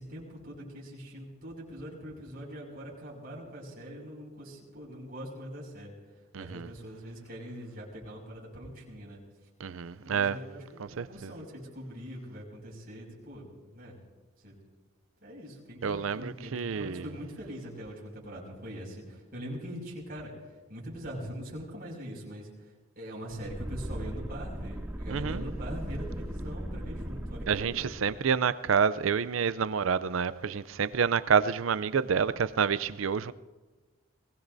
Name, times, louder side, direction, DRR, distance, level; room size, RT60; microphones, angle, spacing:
voice 1, 0.0-5.9 6.4-9.2 10.0-13.4 13.7-14.0 14.4-14.6 15.2-20.3 20.7-22.7 23.0-27.9, equal, 45° right, 5.8 m, -42 dB
voice 2, 6.3-6.7 9.6-10.4 10.8-11.3 15.8-17.0 25.1-25.4 27.5-33.3, right 6 dB, 85° right, 0.5 m, -28 dB
sound 1, 23.3-28.2, right 1 dB, 10° right, 0.5 m, -38 dB
22.5 x 19.5 x 2.7 m
head